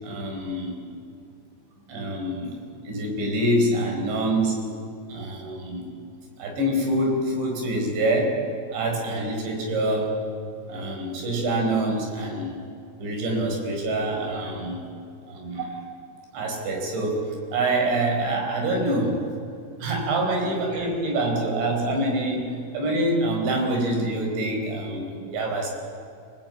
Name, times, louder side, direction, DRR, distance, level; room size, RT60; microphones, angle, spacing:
voice 1, 0.0-0.7 1.9-2.6 2.8-4.6 5.1-5.9 6.4-8.4 8.7-10.2 10.7-12.6 13.0-14.8 15.3-15.8 16.3-19.2 19.8-25.7, right 1 dB, 60° right, 2 dB, 6.6 m, -26 dB
27.5 x 19.5 x 8.8 m, 2.5 s
omnidirectional pair, 5.9 m